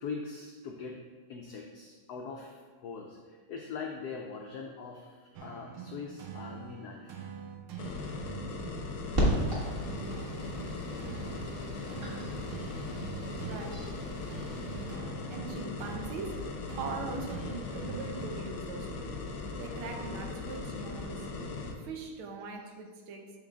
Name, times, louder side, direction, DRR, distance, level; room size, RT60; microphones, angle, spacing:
voice 1, 0.0-1.0 1.3-7.2, left 5 dB, 90° left, 2 dB, 0.8 m, -42 dB
sound 1, 5.3-18.9, right 7 dB, 70° right, 1.0 m, -45 dB
sound 2, 7.8-21.7, left 3 dB, 65° left, 0.9 m, -39 dB
sound 3, 9.1-14.8, right 1 dB, 35° right, 1.2 m, -35 dB
voice 2, 13.4-13.9 15.3-19.1 19.6-21.3 21.8-23.3, right 4 dB, 85° right, 3 dB, 1.6 m, -41 dB
7.6 x 3.8 x 3.6 m, 1.4 s
omnidirectional pair, 2.3 m